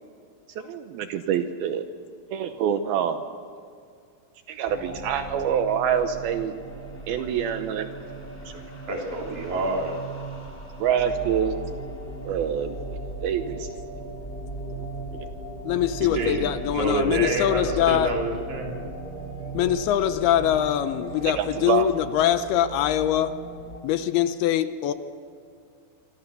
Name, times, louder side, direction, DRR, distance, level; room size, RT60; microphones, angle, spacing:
voice 1, 0.6-1.9 2.3-3.2 4.5-6.5 7.1-7.9 10.8-11.6 12.3-12.8 13.2-13.7 15.1-15.3 18.8-18.9 21.4-21.9, right 8 dB, 75° right, 8 dB, 2.5 m, -26 dB
sound 1, 4.6-23.8, right 2 dB, 15° left, 2.3 m, -37 dB
voice 2, 8.9-10.0 16.0-16.5 16.7-18.7, right 2 dB, 50° right, 0 dB, 4.1 m, -27 dB
voice 3, 15.7-18.1 19.5-23.3 23.8-24.9, left 11 dB, 75° left, 11 dB, 2.6 m, -23 dB
25.5 x 25.5 x 6.9 m, 2.3 s
omnidirectional pair, 4.8 m